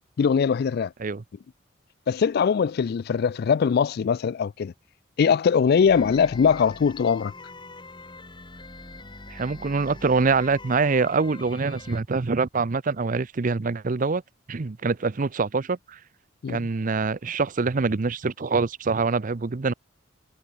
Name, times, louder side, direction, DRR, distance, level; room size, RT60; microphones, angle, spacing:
voice 1, 0.2-0.9 2.1-4.7 5.2-7.3 16.4-16.6, left 6 dB, 50° left, 0.3 m, -21 dB
sound 1, 5.9-12.0, left 2 dB, 25° left, 4.1 m, -43 dB
voice 2, 9.3-14.2 14.5-16.0 16.5-19.7, right 4 dB, 40° right, 0.6 m, -25 dB
head